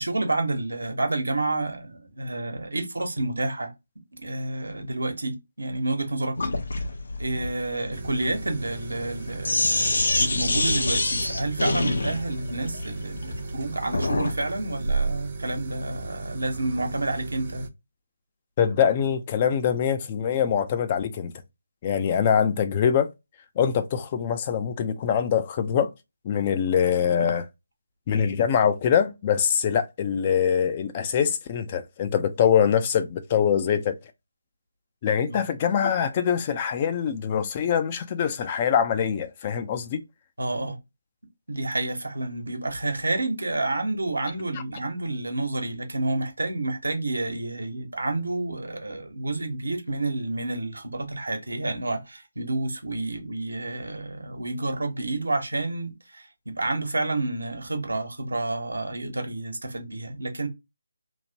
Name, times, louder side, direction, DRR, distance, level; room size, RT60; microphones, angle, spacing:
voice 1, 0.0-3.7 4.1-6.4 7.2-17.7 35.3-35.4 40.4-40.8 41.5-60.5, right 2 dB, 90° right, 1.1 m, -29 dB
Sink (filling or washing), 6.4-14.4, left 2 dB, 70° left, 0.8 m, -27 dB
sound 1, 7.9-17.7, right 3 dB, 40° right, 0.5 m, -35 dB
voice 2, 18.6-21.3 21.8-23.1 23.6-25.9 26.2-27.5 28.1-34.0 35.0-40.0, left 8 dB, 25° left, 0.4 m, -23 dB
2.9 x 2.1 x 2.7 m
figure-of-eight pair, 160°, 0 cm